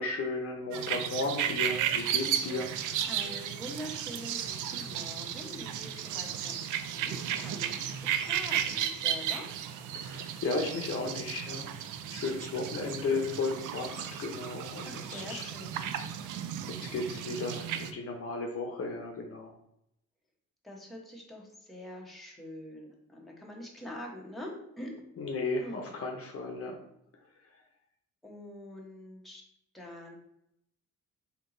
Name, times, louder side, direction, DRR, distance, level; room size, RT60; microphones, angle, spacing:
voice 1, 0.0-3.1 9.9-11.7 12.0-15.5 16.1-16.5 16.8-19.5 25.2-26.7 27.5-27.6, left 3 dB, 50° left, 2 dB, 0.8 m, -35 dB
sound 1, 0.7-17.9, right 9 dB, 80° right, 0.5 m, -34 dB
voice 2, 3.1-9.5 14.8-15.8 20.6-24.9 25.6-25.8 28.2-29.4 29.7-30.2, left 1 dB, ahead, -2 dB, 1.1 m, -44 dB
3.4 x 2.9 x 3.8 m, 0.77 s
cardioid pair, 90°, 30 cm